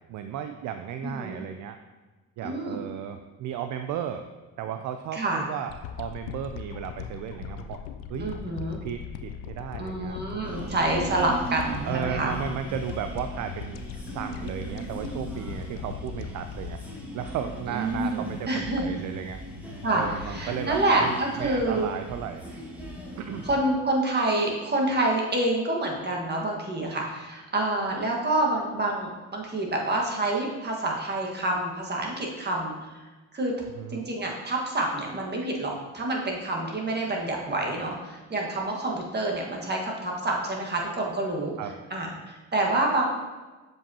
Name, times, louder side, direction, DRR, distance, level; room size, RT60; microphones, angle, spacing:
voice 1, 0.1-1.8 2.4-4.2 4.6-5.7 6.0-7.8 8.1-8.4 8.8-11.2 11.9-13.8 14.1-16.8 17.1-19.4 19.9-22.4 23.2-23.5 33.8-34.1 41.6-41.8, right 9 dB, 60° right, 8 dB, 0.4 m, -34 dB
voice 2, 1.0-1.4 2.4-2.8 5.1-5.5 8.2-8.8 9.8-12.3 17.7-19.0 19.8-21.9 23.4-33.0 33.3-33.5 33.9-41.5 41.9-43.1, right 2 dB, 30° right, -1 dB, 1.6 m, -27 dB
sound 1, 5.7-18.0 18.5-18.6, left 8 dB, 90° left, 0.5 m, -40 dB
sound 2, 10.4-23.5, equal, 5° right, 1.6 m, -39 dB
7.2 x 5.3 x 2.8 m, 1.2 s
supercardioid pair, 75°, 34 cm